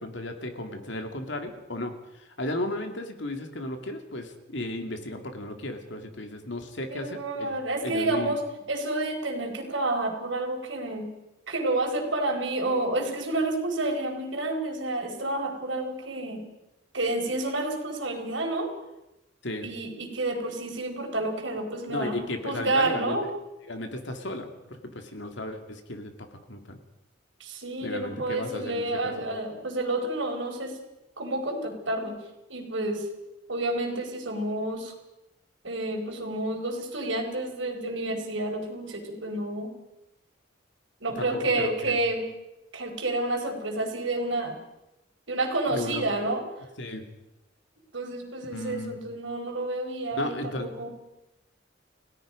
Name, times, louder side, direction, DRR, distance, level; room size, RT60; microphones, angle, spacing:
voice 1, 0.0-7.6 7.8-8.4 19.4-19.7 21.9-23.3 23.7-26.8 27.8-29.2 41.1-42.0 45.7-46.1 46.8-47.1 48.5-49.0 50.2-50.9, left 1 dB, 65° left, 5 dB, 2.6 m, -35 dB
voice 2, 6.9-8.4 8.7-11.1 11.5-16.5 16.9-18.7 19.6-23.3 27.4-30.8 31.2-32.2 32.5-33.1 33.5-34.9 35.6-39.7 41.0-42.2 42.7-44.6 45.3-46.4 47.9-50.9, right 2 dB, 75° right, 3 dB, 4.6 m, -29 dB
30.0 x 17.0 x 5.2 m, 0.94 s
head